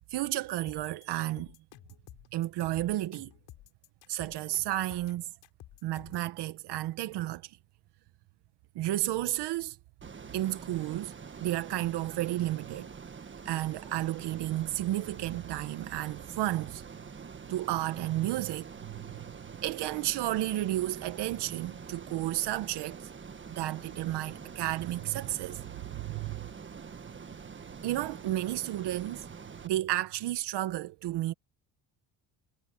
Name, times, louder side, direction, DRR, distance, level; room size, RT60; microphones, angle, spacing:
voice 1, 0.1-1.5 2.3-3.3 4.1-5.3 5.8-7.5 8.7-9.8 10.3-11.1 11.4-12.9 13.4-16.8 17.5-19.0 19.6-23.1 23.5-25.6 25.9-26.4 27.8-29.2 29.6-31.3, right 15 dB, 75° right, 1.1 m, -32 dB
sound 1, 0.7-6.3, left 15 dB, 85° left, 7.8 m, -52 dB
Ocean, 10.0-29.7, right 5 dB, 30° right, 1.6 m, -46 dB
cardioid pair, 110°, 41 cm